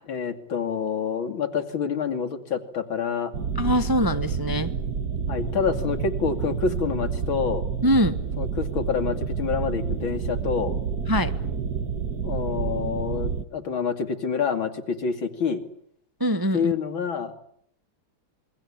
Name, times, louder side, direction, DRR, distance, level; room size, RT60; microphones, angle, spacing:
voice 1, 0.1-3.3 5.3-7.6 8.4-10.7 12.2-15.6 16.5-17.3, left 6 dB, 75° left, 8 dB, 3.3 m, -27 dB
sound 1, 3.3-13.4, right 6 dB, 50° right, 1.9 m, -29 dB
voice 2, 3.6-4.7 7.8-8.1 11.1-11.3 16.2-16.7, equal, 15° right, 10 dB, 1.0 m, -22 dB
27.5 x 23.0 x 8.7 m, 0.69 s
omnidirectional pair, 2.2 m